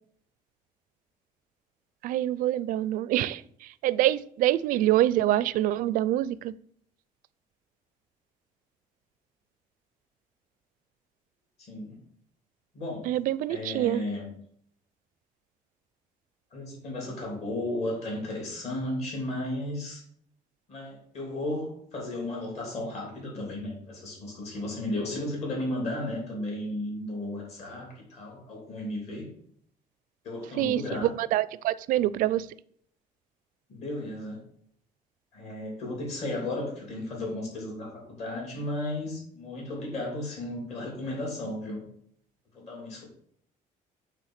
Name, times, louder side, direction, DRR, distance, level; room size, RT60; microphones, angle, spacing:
voice 1, 2.0-3.4 3.8-6.5 13.1-14.0 30.6-30.8 31.3-32.4, right 13 dB, 65° right, 17 dB, 0.4 m, -25 dB
voice 2, 11.6-12.0 12.7-13.1 13.5-14.3 16.5-20.0 20.7-29.3 30.2-31.1 33.7-34.4 35.3-41.8 42.5-43.0, left 1 dB, 45° left, -2 dB, 3.2 m, -34 dB
9.0 x 3.7 x 6.6 m, 0.65 s
cardioid pair, 170°, 15 cm